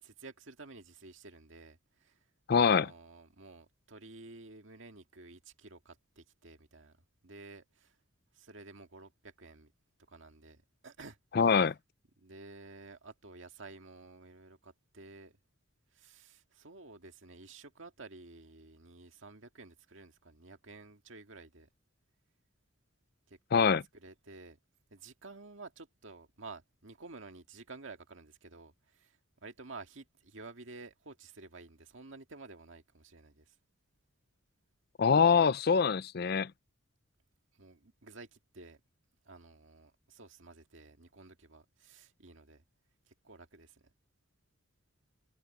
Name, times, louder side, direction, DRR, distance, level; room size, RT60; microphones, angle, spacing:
voice 1, 0.0-2.2 2.6-6.9 7.2-8.0 8.3-9.7 10.1-11.2 11.5-11.7 12.2-15.3 15.9-21.7 23.3-24.6 24.9-33.5 37.6-38.8 39.3-42.6 43.1-43.8, right 3 dB, 75° right, 1.9 m, -52 dB
voice 2, 2.5-2.9 11.4-11.7 23.5-23.8 35.0-36.5, left 6 dB, 50° left, 0.5 m, -24 dB
head